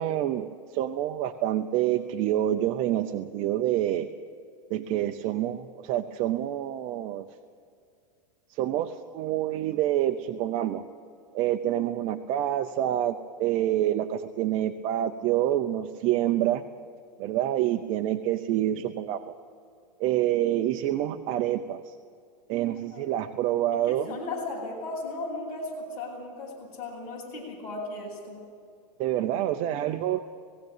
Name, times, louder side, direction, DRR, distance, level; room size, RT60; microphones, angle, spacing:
voice 1, 0.0-4.1 4.7-7.3 8.5-10.8 11.3-16.6 17.2-19.3 20.0-22.0 22.5-24.2 29.0-30.2, right 12 dB, 35° right, 7 dB, 0.7 m, -27 dB
voice 2, 23.8-28.4, left 2 dB, 35° left, -4 dB, 7.8 m, -36 dB
19.0 x 16.5 x 9.1 m, 2.3 s
supercardioid pair, 160°, 21 cm